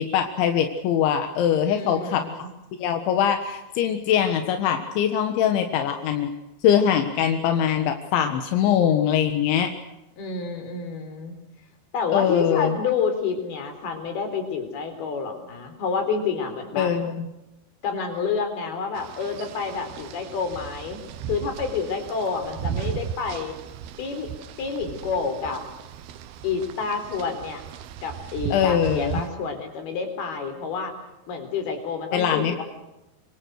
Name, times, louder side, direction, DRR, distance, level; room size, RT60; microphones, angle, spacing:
voice 1, 0.0-2.2 2.8-6.3 6.6-9.7 12.1-12.8 16.8-17.3 28.5-29.2 32.1-32.6, left 9 dB, 85° left, 6 dB, 3.9 m, -22 dB
voice 2, 1.7-2.5 10.2-11.3 11.9-16.9 17.8-21.0 21.3-23.6 24.0-24.3 24.6-25.6 26.4-27.6 28.0-30.9 31.3-32.6, left 5 dB, 60° left, 7 dB, 5.8 m, -29 dB
sound 1, 19.0-29.3, right 9 dB, 70° right, 2.8 m, -36 dB
26.0 x 25.0 x 6.6 m, 0.95 s
omnidirectional pair, 5.2 m